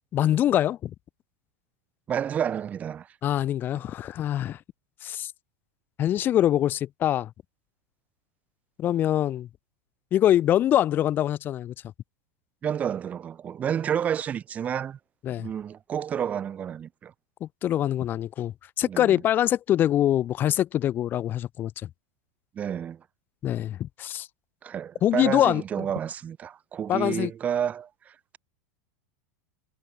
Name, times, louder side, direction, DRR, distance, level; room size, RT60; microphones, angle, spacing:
voice 1, 0.1-0.9 3.2-4.6 5.0-5.3 6.0-7.3 8.8-9.5 10.1-11.7 15.2-15.5 17.4-21.9 23.4-24.3 25.0-25.9 26.9-27.3, left 11 dB, 25° left, 1.1 m, -24 dB
voice 2, 2.1-3.1 12.6-15.0 15.4-17.1 18.9-19.2 22.5-23.0 24.6-28.4, right 8 dB, 20° right, 0.7 m, -30 dB
supercardioid pair, 150°, 7 cm